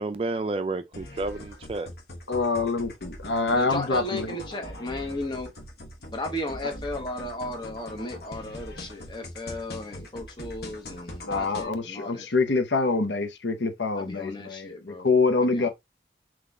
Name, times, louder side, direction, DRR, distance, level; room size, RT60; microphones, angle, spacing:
voice 1, 0.0-1.9, right 3 dB, 30° right, 0.4 m, -30 dB
sound 1, 0.9-11.6, left 1 dB, 60° left, 1.2 m, -42 dB
voice 2, 2.3-4.4 11.2-15.7, left 3 dB, 80° left, 0.8 m, -25 dB
voice 3, 3.5-5.5 6.1-12.3 13.9-15.1 15.4-15.7, left 1 dB, 25° left, 1.0 m, -35 dB
3.9 x 3.1 x 3.5 m
head